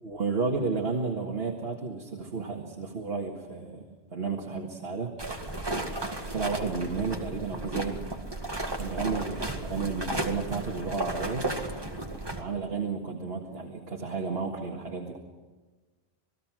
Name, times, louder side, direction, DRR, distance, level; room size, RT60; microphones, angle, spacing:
voice 1, 0.0-3.8 4.1-5.1 6.3-8.0 8.7-11.5 12.4-15.2, right 4 dB, 65° right, 1 dB, 2.0 m, -32 dB
sound 1, 5.2-12.4, right 1 dB, 20° right, 2.1 m, -34 dB
28.0 x 19.5 x 6.2 m, 1.3 s
omnidirectional pair, 1.1 m